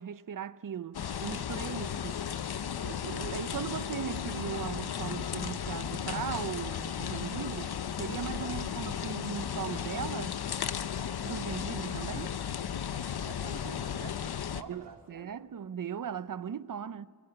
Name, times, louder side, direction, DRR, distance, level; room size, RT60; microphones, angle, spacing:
voice 1, 0.0-2.2 2.8-7.7 8.0-10.4 11.2-12.4 14.5-17.1, right 8 dB, 55° right, 0.7 m, -38 dB
sound 1, 0.9-14.6, left 8 dB, 70° left, 0.8 m, -35 dB
voice 2, 13.2-15.3, right 5 dB, 85° right, 2.8 m, -48 dB
28.5 x 20.0 x 9.9 m
wide cardioid pair, 110°, 39 cm